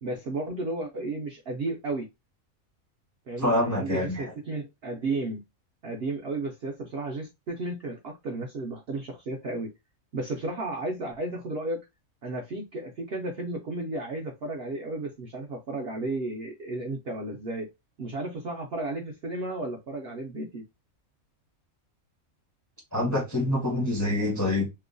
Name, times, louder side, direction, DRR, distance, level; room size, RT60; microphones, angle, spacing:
voice 1, 0.0-2.1 3.3-5.4 5.8-9.7 10.1-11.8 12.2-17.7 18.0-20.6, right 2 dB, 65° right, 0.6 m, -33 dB
voice 2, 3.4-4.3 22.9-24.7, left 1 dB, 15° left, 0.6 m, -26 dB
3.0 x 2.1 x 2.5 m
omnidirectional pair, 1.5 m